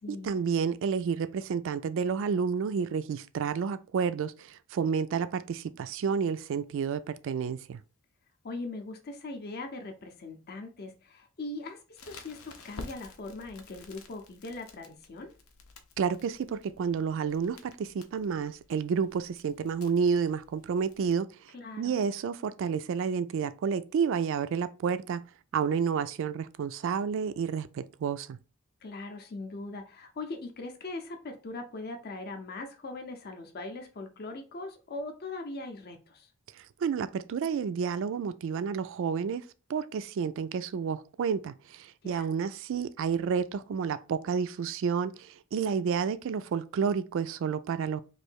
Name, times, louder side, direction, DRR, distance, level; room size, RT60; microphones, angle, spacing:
voice 1, 0.1-7.8 16.0-25.2 25.5-28.4 36.6-39.4 39.7-48.0, right 6 dB, 60° right, 0.3 m, -30 dB
voice 2, 8.4-11.8 12.0-15.3 21.5-21.9 28.8-36.3 42.0-42.3, left 2 dB, 45° left, 0.6 m, -40 dB
Crackle, 12.0-21.1, left 3 dB, 90° left, 0.7 m, -51 dB
3.1 x 2.6 x 4.5 m
head